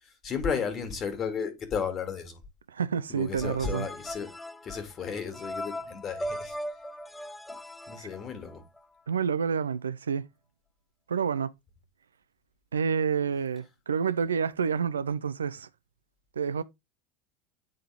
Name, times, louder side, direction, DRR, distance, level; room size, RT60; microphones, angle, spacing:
voice 1, 0.0-2.4 3.1-4.3 4.6-6.6 7.5-7.6 7.9-8.6, left 6 dB, 40° left, 2.3 m, -34 dB
voice 2, 2.7-3.9 8.0-8.1 9.1-10.3 11.1-11.5 12.7-15.7 16.4-16.6, right 6 dB, 90° right, 0.4 m, -28 dB
sound 1, 3.4-8.8, equal, 10° left, 0.7 m, -39 dB
8.7 x 3.7 x 3.4 m
hypercardioid pair, 80°, 0 cm